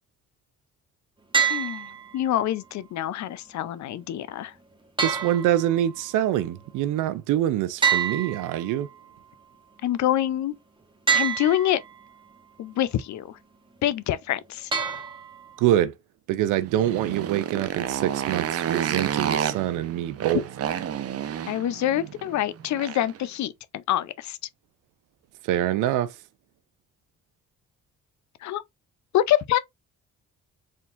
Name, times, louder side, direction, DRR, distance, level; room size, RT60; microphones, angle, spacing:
Tapping metal heavy ringing, 1.3-2.3 5.0-6.1 7.8-9.0 11.1-12.0 14.7-15.6, right 7 dB, 15° right, 1.3 m, -27 dB
voice 1, 1.5-4.5 9.8-10.5 11.1-11.8 12.6-13.4 13.8-14.7 21.5-24.4 28.4-28.6 29.1-29.6, left 12 dB, 65° left, 0.6 m, -26 dB
voice 2, 5.0-8.9 15.6-15.9 16.3-20.4 25.5-26.1, right 12 dB, 90° right, 0.5 m, -25 dB
Motorcycle, 16.6-23.2, right 9 dB, 55° right, 0.7 m, -30 dB
4.3 x 3.7 x 2.5 m
cardioid pair, 90°, 30 cm